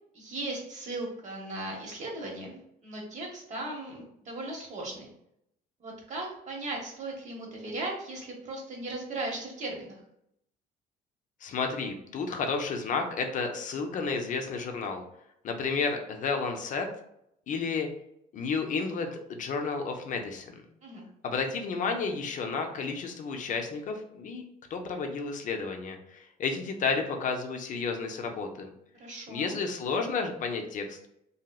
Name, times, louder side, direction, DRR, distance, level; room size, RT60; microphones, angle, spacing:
voice 1, 0.1-5.1 5.8-10.0 20.8-21.0 28.9-29.6, right 2 dB, 45° right, 0 dB, 1.0 m, -37 dB
voice 2, 11.4-15.0 15.4-16.9 17.5-17.9 18.3-20.6 21.2-24.4 24.7-28.7 29.3-31.1, left 4 dB, 50° left, 4 dB, 0.5 m, -31 dB
2.9 x 2.7 x 2.3 m, 0.77 s
cardioid pair, 110°, 17 cm